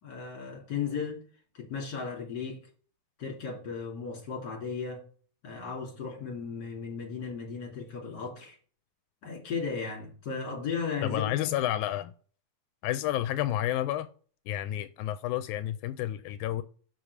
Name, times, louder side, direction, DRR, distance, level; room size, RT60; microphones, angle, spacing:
voice 1, 0.0-1.2 1.5-2.6 3.2-5.0 5.4-8.6 9.2-11.5, left 5 dB, 35° left, 3.2 m, -35 dB
voice 2, 11.0-12.1 12.8-14.1 14.5-16.6, left 13 dB, 85° left, 2.0 m, -30 dB
6.0 x 5.2 x 6.4 m
omnidirectional pair, 3.4 m